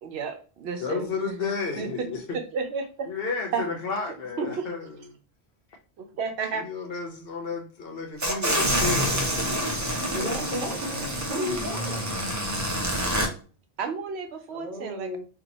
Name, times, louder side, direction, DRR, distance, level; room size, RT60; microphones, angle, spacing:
voice 1, 0.0-1.9 2.3-3.1 3.5-3.6 4.4-4.7 6.0-6.7 13.8-15.2, right 5 dB, 85° right, 0.9 m, -32 dB
voice 2, 0.8-2.4 3.1-4.9 6.5-10.5 10.8-11.1, left 4 dB, 65° left, 0.9 m, -33 dB
sound 1, 8.2-13.3, equal, 25° right, 0.4 m, -27 dB
voice 3, 10.1-10.8 11.3-12.0 14.5-15.2, equal, 45° left, 1.2 m, -33 dB
2.8 x 2.3 x 3.9 m
omnidirectional pair, 1.1 m